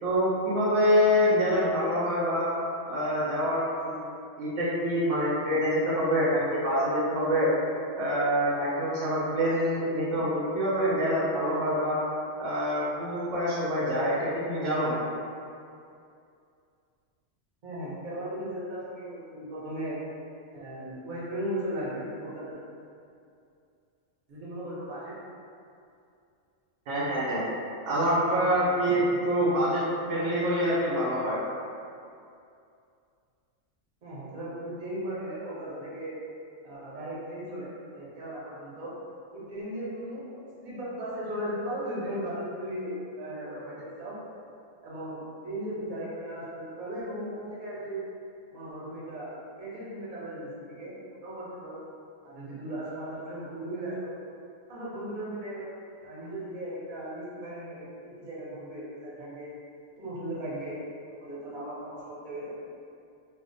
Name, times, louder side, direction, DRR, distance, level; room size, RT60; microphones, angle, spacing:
voice 1, 0.0-2.5 2.8-4.0 4.4-7.5 8.0-12.0 12.4-15.0 26.9-27.4 27.9-29.8 30.1-31.4, equal, 75° right, -8 dB, 0.9 m, -26 dB
voice 2, 17.6-20.0 20.5-22.5 24.3-25.1 27.9-28.7 29.1-30.2 34.0-36.1 36.6-38.9 39.3-44.1 44.8-48.0 48.5-50.9 51.2-51.8 52.2-54.1 54.7-55.7 56.0-59.5 60.0-60.8 61.2-62.5, right 1 dB, 45° right, -9 dB, 0.8 m, -37 dB
2.4 x 2.0 x 2.5 m, 2.5 s
omnidirectional pair, 1.3 m